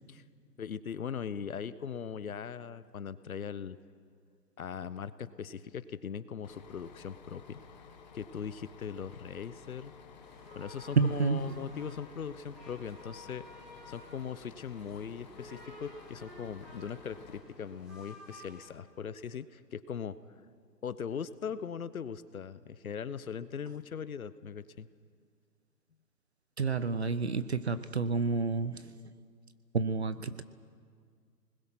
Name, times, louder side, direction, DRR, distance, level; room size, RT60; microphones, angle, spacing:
voice 1, 0.6-3.8 4.6-7.6 8.1-9.9 10.5-13.5 13.9-20.2 20.8-24.9, left 7 dB, 60° left, 15 dB, 0.9 m, -40 dB
Bus, 6.4-17.4, left 6 dB, 25° left, 1.5 m, -54 dB
sound 1, 10.2-18.7, left 1 dB, ahead, 1.5 m, -53 dB
voice 2, 11.0-11.5 26.6-28.9 29.7-30.4, right 4 dB, 40° right, 13 dB, 0.7 m, -29 dB
27.5 x 20.5 x 6.0 m, 2.1 s
hypercardioid pair, 170°, 50 cm